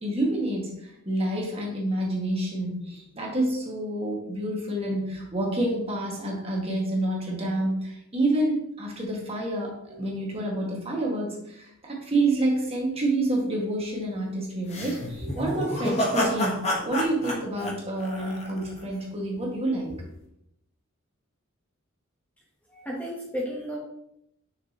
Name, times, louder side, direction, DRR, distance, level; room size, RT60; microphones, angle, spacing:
voice 1, 0.0-20.0, right 1 dB, 30° right, -2 dB, 1.8 m, -28 dB
sound 1, 14.7-18.8, equal, 30° left, 1.3 m, -29 dB
voice 2, 22.7-23.8, equal, 5° left, -3 dB, 1.0 m, -33 dB
6.6 x 6.3 x 3.0 m, 0.78 s
head